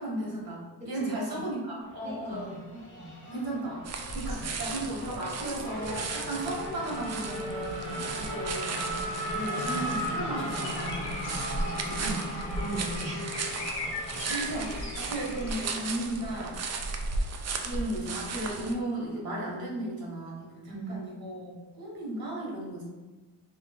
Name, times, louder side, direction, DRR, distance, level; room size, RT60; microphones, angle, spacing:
voice 1, 0.0-2.8 3.3-8.8 9.3-11.4 11.8-12.4 14.3-16.6 17.6-22.8, right 1 dB, 55° right, -4 dB, 1.4 m, -35 dB
voice 2, 0.8-1.4 2.0-2.7 3.0-3.2 4.3-4.5 11.9-13.4 14.2-14.4 20.7-21.1, right 3 dB, 15° right, -4 dB, 0.8 m, -39 dB
Race car auto racing / Accelerating revving vroom, 1.8-18.8, equal, 45° left, 1.2 m, -38 dB
sound 1, 3.9-18.7, right 3 dB, 40° right, 0.4 m, -36 dB
sound 2, 10.6-15.7, left 2 dB, 75° left, 0.9 m, -40 dB
3.3 x 2.7 x 3.5 m, 1.2 s
cardioid pair, 105°, 43 cm